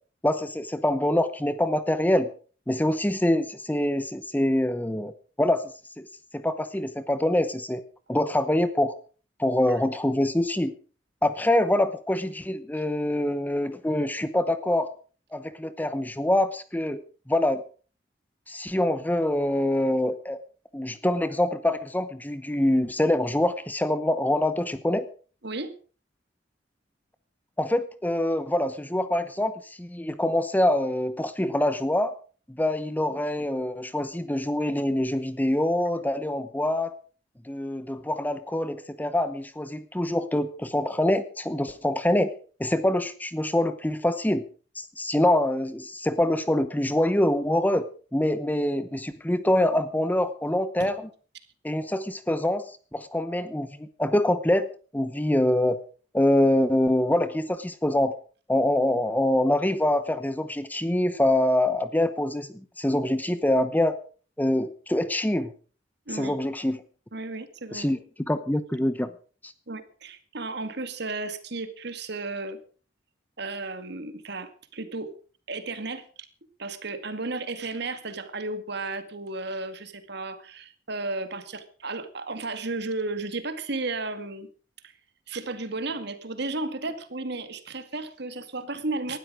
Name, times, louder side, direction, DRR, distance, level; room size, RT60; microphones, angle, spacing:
voice 1, 0.2-2.3 2.7-5.1 5.4-5.6 6.0-6.1 6.3-7.8 8.1-8.9 9.4-10.7 11.2-14.9 15.3-17.0 17.3-17.6 18.5-20.4 20.7-25.0 27.6-32.1 32.5-36.9 37.4-42.3 42.6-44.4 44.8-51.1 51.6-54.7 54.9-55.8 56.1-58.2 58.5-64.0 64.4-65.5 66.1-66.8 67.7-69.1 69.4-69.5, left 1 dB, 10° left, 12 dB, 0.9 m, -25 dB
voice 2, 25.4-25.7 50.8-50.9 66.1-66.4 67.1-67.9 69.7-72.6 73.4-75.1 75.5-76.0 76.6-84.5 85.3-89.2, right 3 dB, 65° right, 11 dB, 2.1 m, -33 dB
19.0 x 12.5 x 5.0 m, 0.40 s
head